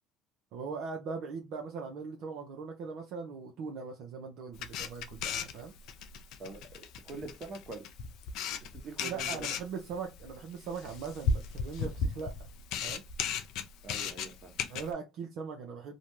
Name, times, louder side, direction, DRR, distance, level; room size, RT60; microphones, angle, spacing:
voice 1, 0.5-5.7 9.0-12.4 12.8-13.0 14.7-15.9, right 5 dB, 65° right, 0.6 m, -40 dB
Camera, 4.5-14.9, left 5 dB, 65° left, 0.4 m, -36 dB
voice 2, 6.4-7.9 8.7-9.5 13.8-14.5, right 4 dB, 45° right, 1.0 m, -44 dB
2.6 x 2.1 x 3.0 m
hypercardioid pair, 65°, 0 cm